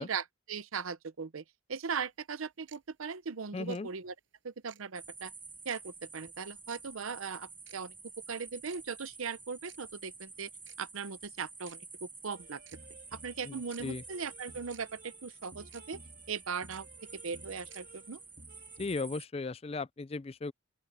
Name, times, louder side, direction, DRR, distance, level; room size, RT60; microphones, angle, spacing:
voice 1, 0.0-1.4 1.7-4.1 4.4-5.3 5.6-7.9 8.3-10.5 10.8-12.6 13.1-16.0 16.3-16.9 17.1-18.2, right 5 dB, 85° right, 0.7 m, -39 dB
sound 1, 2.7-2.8 3.7-3.8 4.7-4.8 5.7-5.8 6.7-6.8 7.7-7.8 8.7-8.8 9.7-9.8 10.7-10.8 11.7-11.8 12.7-12.8 13.7-13.8 14.7-14.8 15.7-15.8 16.7-16.8 17.7-17.8, right 12 dB, 65° right, 6.3 m, -55 dB
voice 2, 3.5-3.9 13.4-14.0 18.8-20.5, left 3 dB, 30° left, 0.4 m, -37 dB
sound 2, 4.9-19.2, right 4 dB, 10° right, 0.8 m, -50 dB
sound 3, 12.4-19.0, right 2 dB, 45° right, 3.3 m, -56 dB
open air
head